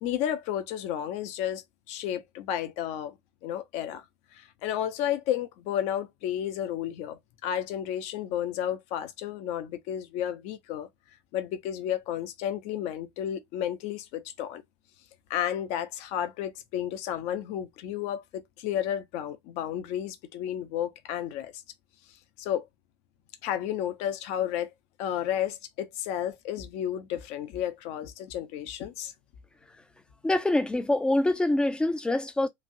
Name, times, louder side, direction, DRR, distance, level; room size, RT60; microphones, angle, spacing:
voice 1, 0.0-3.2 3.4-4.0 4.3-10.9 11.3-14.6 15.3-21.6 22.4-22.7 23.4-24.7 25.0-29.1, left 10 dB, 45° left, 0.7 m, -32 dB
voice 2, 30.2-32.5, left 1 dB, 5° left, 0.5 m, -25 dB
3.0 x 2.6 x 2.5 m
figure-of-eight pair, 80°, 15 cm